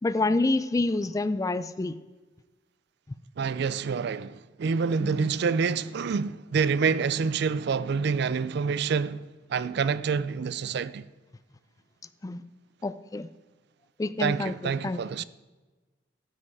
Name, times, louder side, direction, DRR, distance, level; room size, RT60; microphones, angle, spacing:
voice 1, 0.0-2.0 5.0-5.3 12.2-12.4 12.8-13.3 14.0-15.2, left 2 dB, 20° left, 0.3 m, -28 dB
voice 2, 3.4-11.1 14.2-15.2, right 5 dB, 65° right, 0.4 m, -27 dB
13.0 x 7.7 x 4.8 m
head